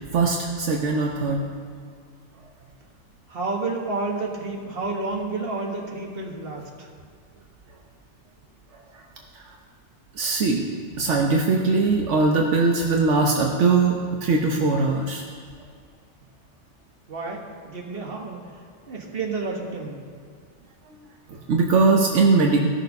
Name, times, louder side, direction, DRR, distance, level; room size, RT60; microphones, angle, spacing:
voice 1, 0.1-1.4 9.4-9.5 10.2-10.6 11.0-15.2 21.3-22.7, right 3 dB, 80° right, 0 dB, 1.2 m, -21 dB
voice 2, 3.3-6.7 17.1-18.4 18.9-20.0, right 3 dB, 55° right, -1 dB, 1.8 m, -30 dB
16.0 x 6.7 x 5.3 m, 2.1 s
omnidirectional pair, 1.2 m